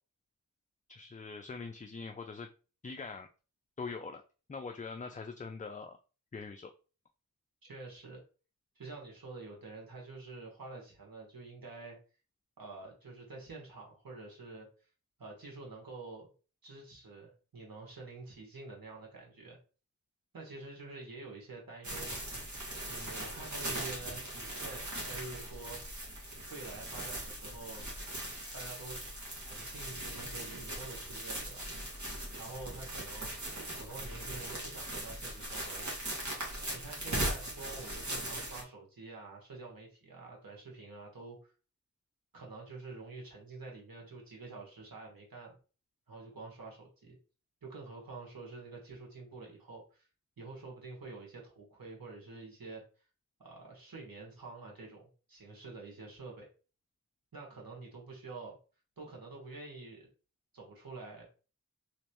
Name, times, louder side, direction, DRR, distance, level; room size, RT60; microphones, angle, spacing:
voice 1, 0.9-2.5 2.8-3.3 3.8-4.2 4.5-6.0 6.3-6.7, left 4 dB, 25° left, 5 dB, 0.3 m, -42 dB
voice 2, 7.6-8.2 8.7-12.0 12.6-14.7 15.2-16.3 16.6-19.6 20.3-22.2 22.9-26.1 26.5-27.9 28.5-31.6 32.4-35.9 36.7-41.5 42.3-45.6 46.1-47.2 47.6-50.1 50.4-52.8 53.4-56.5 57.3-58.6 59.0-60.1 60.5-61.2, right 3 dB, 80° right, -1 dB, 1.5 m, -48 dB
sound 1, 21.8-38.6, right 1 dB, 55° right, 1.5 m, -40 dB
3.2 x 3.1 x 2.9 m, 0.35 s
wide cardioid pair, 50°, 34 cm